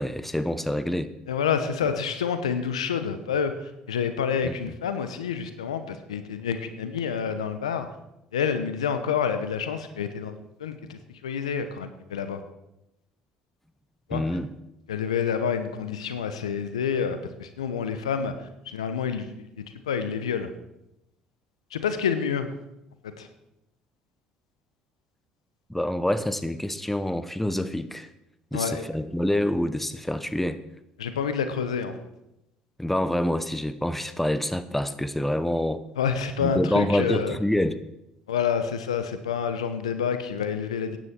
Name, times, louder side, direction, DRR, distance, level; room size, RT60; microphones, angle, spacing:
voice 1, 0.0-1.1 4.4-4.6 14.1-14.5 25.7-28.1 28.5-30.6 32.8-35.8 36.4-37.8, left 1 dB, 5° left, 12 dB, 1.0 m, -26 dB
voice 2, 1.3-7.9 8.3-12.4 14.1-14.2 14.9-20.5 21.7-22.5 23.0-23.3 28.5-28.9 31.0-31.9 36.0-37.4 38.3-41.0, left 7 dB, 90° left, 10 dB, 0.9 m, -28 dB
16.0 x 10.5 x 4.5 m, 0.88 s
hypercardioid pair, 60°, 3 cm